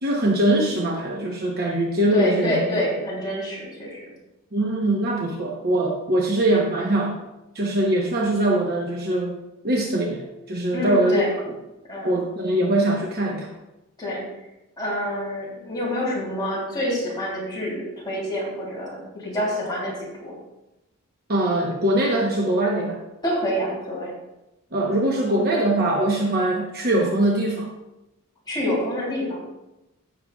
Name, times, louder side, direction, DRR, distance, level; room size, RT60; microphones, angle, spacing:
voice 1, 0.0-2.8 4.5-7.2 7.5-9.3 9.6-11.3 12.0-13.5 21.3-23.0 24.7-27.7, right 1 dB, 45° right, -1 dB, 1.1 m, -22 dB
voice 2, 2.1-4.0 10.7-11.3 11.9-12.1 14.0-14.2 14.8-19.9 20.2-20.3 23.2-24.1 28.5-29.5, equal, 20° left, -5 dB, 3.2 m, -27 dB
14.5 x 6.6 x 2.4 m, 0.95 s
head